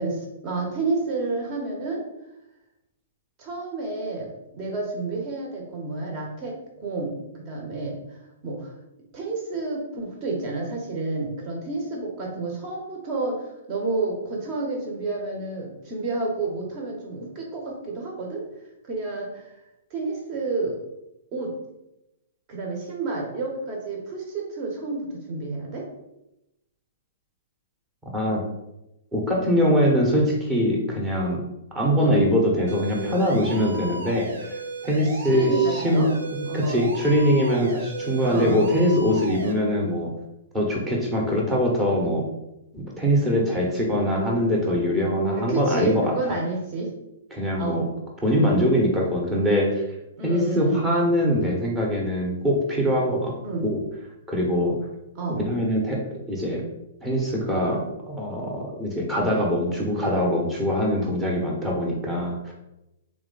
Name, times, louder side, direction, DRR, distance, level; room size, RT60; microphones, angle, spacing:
voice 1, 0.0-2.0 3.4-4.3 4.5-8.0 8.4-8.7 9.1-18.4 18.8-19.5 19.9-20.8 21.3-21.5 22.5-25.9 32.0-32.3 35.2-36.1 36.5-36.8 38.3-38.6 45.4-46.9 47.6-47.9 50.2-50.8 53.4-53.6 55.1-55.5, right 3 dB, 35° right, 0 dB, 1.3 m, -30 dB
voice 2, 28.1-28.4 29.1-31.4 31.7-40.1 40.5-42.2 42.7-46.3 47.3-47.9 48.2-49.8 50.2-53.3 53.6-53.8 54.3-54.8 55.4-56.6 57.0-62.5, equal, 10° right, -2 dB, 1.1 m, -23 dB
sound 1, 32.7-39.5, right 2 dB, 80° right, 0.7 m, -35 dB
3.7 x 3.0 x 4.0 m, 0.89 s
hypercardioid pair, 140°, 0 cm